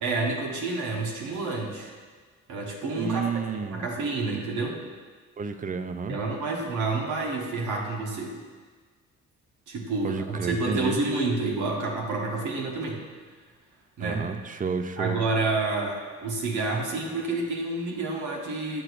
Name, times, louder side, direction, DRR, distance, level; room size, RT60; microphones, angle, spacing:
voice 1, 0.0-1.9 2.5-3.2 3.5-4.8 6.1-8.4 9.7-13.0 14.0-14.2 15.0-18.8, right 3 dB, 80° right, 0 dB, 1.2 m, -29 dB
voice 2, 3.0-3.9 5.4-6.2 10.0-11.0 14.0-15.2, right 5 dB, 25° right, 9 dB, 0.4 m, -31 dB
8.7 x 6.3 x 2.5 m, 1.5 s
cardioid pair, 90°, 30 cm